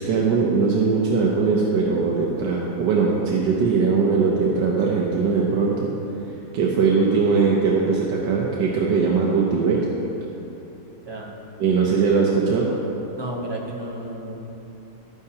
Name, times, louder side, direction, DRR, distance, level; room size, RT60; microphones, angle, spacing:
voice 1, 0.0-5.9 6.5-9.8 11.6-12.7, right 5 dB, 85° right, -3 dB, 1.5 m, -20 dB
voice 2, 11.0-11.3 13.1-14.4, right 1 dB, 20° right, -2 dB, 0.7 m, -32 dB
11.5 x 9.6 x 2.9 m, 2.9 s
omnidirectional pair, 1.9 m